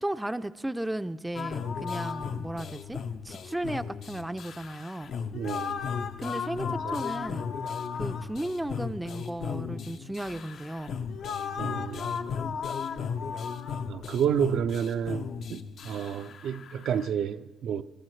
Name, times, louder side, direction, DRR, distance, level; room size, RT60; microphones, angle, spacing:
voice 1, 0.0-3.0 3.2-5.1 6.2-7.5 7.9-10.9, right 1 dB, 10° right, 0.4 m, -35 dB
sound 1, 1.4-17.1, left 6 dB, 65° left, 0.7 m, -35 dB
voice 2, 5.3-5.8 6.7-7.0 11.6-12.2 13.8-17.8, right 8 dB, 75° right, 0.5 m, -30 dB
22.0 x 13.0 x 3.2 m
cardioid pair, 90°, 0 cm